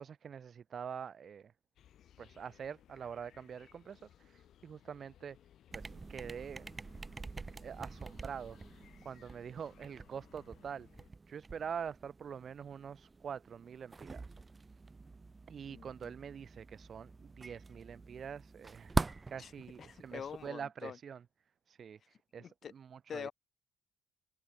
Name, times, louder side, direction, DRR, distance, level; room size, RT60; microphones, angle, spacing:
voice 1, 0.0-1.5 2.2-5.4 5.7-6.7 7.6-8.6 9.0-10.9 11.3-14.3 15.5-18.9 19.3-21.2 21.7-22.0 22.3-23.3, right 7 dB, 50° right, 1.0 m, -45 dB
sound 1, 1.8-11.1, left 10 dB, 65° left, 6.0 m, -63 dB
sound 2, 5.7-20.5, right 3 dB, 25° right, 2.2 m, -44 dB
voice 2, 15.7-16.1 19.4-19.5 19.8-21.0 22.4-22.7 23.1-23.3, left 7 dB, 50° left, 2.7 m, -45 dB
open air
cardioid pair, 95°, 0 cm